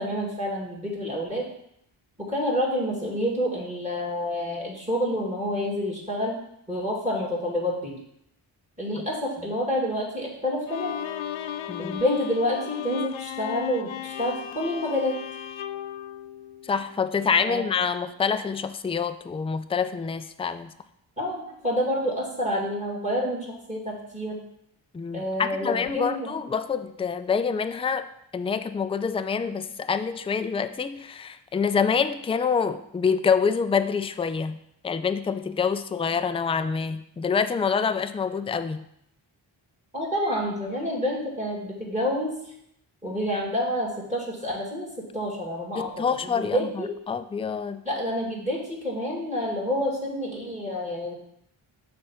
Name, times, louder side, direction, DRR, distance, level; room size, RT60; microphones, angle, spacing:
voice 1, 0.0-1.4 2.2-6.3 6.7-7.9 8.8-11.0 11.8-15.1 17.4-17.8 21.2-24.4 25.1-26.2 39.9-42.3 43.0-44.9 45.1-45.9 46.2-46.9 47.8-51.1, equal, 15° right, -3 dB, 2.3 m, -28 dB
Bowed string instrument, 10.7-16.9, left 11 dB, 75° left, 0.5 m, -35 dB
voice 2, 11.7-12.0 16.6-20.7 24.9-28.0 28.3-34.6 34.8-38.9 45.8-47.8, left 6 dB, 15° left, 11 dB, 0.3 m, -26 dB
6.6 x 3.5 x 5.7 m, 0.74 s
cardioid pair, 45°, 48 cm